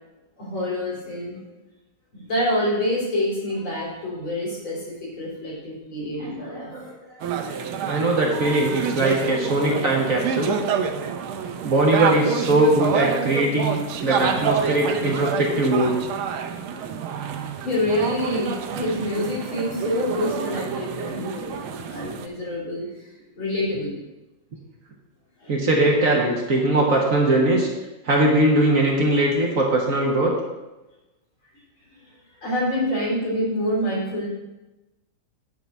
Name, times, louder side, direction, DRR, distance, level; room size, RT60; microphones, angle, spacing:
voice 1, 0.4-1.4 2.1-6.8 7.1-7.6 17.6-21.6 21.9-22.9 23.4-23.9 25.4-25.5 32.4-34.3, left 1 dB, 80° left, -6 dB, 3.9 m, -27 dB
voice 2, 6.2-6.9 7.9-10.6 11.6-16.0 21.7-21.9 25.5-27.7 28.0-30.3, right 1 dB, 45° right, -1 dB, 1.4 m, -21 dB
sound 1, 7.2-22.3, right 7 dB, 80° right, 1.5 m, -28 dB
9.2 x 4.0 x 7.1 m, 1.0 s
omnidirectional pair, 2.2 m